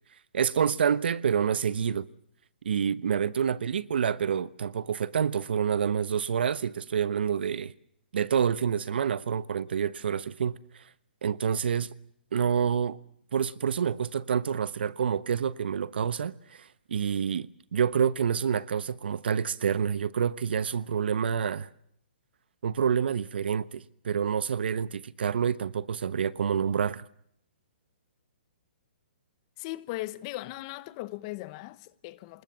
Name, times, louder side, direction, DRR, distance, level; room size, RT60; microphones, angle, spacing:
voice 1, 0.3-2.1 2.6-7.7 8.1-10.5 11.2-11.9 12.3-13.0 13.3-21.7 22.6-27.0, right 7 dB, 70° right, 1.1 m, -28 dB
voice 2, 29.6-32.4, left 18 dB, 30° left, 1.1 m, -38 dB
26.5 x 20.5 x 7.6 m
hypercardioid pair, 155°, 6 cm